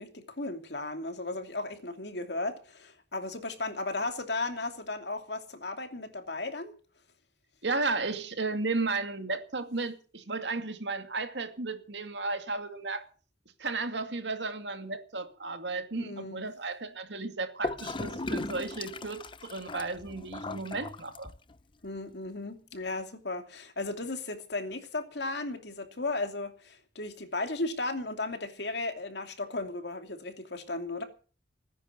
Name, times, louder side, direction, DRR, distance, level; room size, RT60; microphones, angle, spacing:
voice 1, 0.0-6.7 16.0-16.4 21.8-31.0, left 2 dB, 65° left, 2.7 m, -35 dB
voice 2, 7.6-13.1 13.6-21.3, right 3 dB, 70° right, 2.3 m, -34 dB
Gurgling / Toilet flush, 17.6-21.6, left 2 dB, 25° left, 0.7 m, -37 dB
19.0 x 10.0 x 6.7 m
head